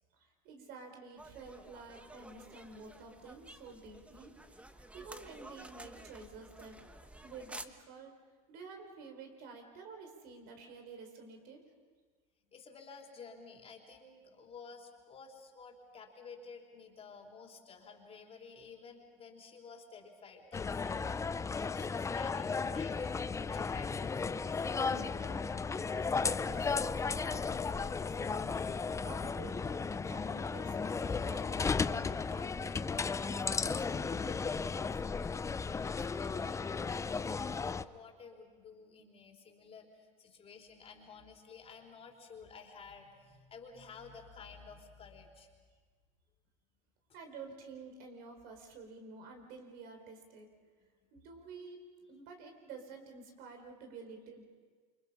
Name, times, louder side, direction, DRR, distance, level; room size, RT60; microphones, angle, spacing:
voice 1, 0.1-4.3 4.7-6.8 7.2-8.1 8.5-11.6 24.9-25.5 25.9-28.5 29.0-32.8 33.3-35.3 47.1-50.5 51.1-54.5, right 4 dB, 60° right, 4 dB, 4.7 m, -51 dB
sound 1, 1.2-7.7, right 1 dB, 5° right, 1.3 m, -52 dB
voice 2, 12.4-21.1 21.5-24.7 35.8-45.5 50.8-51.2, left 5 dB, 35° left, 1 dB, 4.1 m, -53 dB
sound 2, 20.5-37.8, left 5 dB, 15° left, 0.6 m, -35 dB
28.5 x 25.5 x 5.7 m, 1.5 s
hypercardioid pair, 95°, 18 cm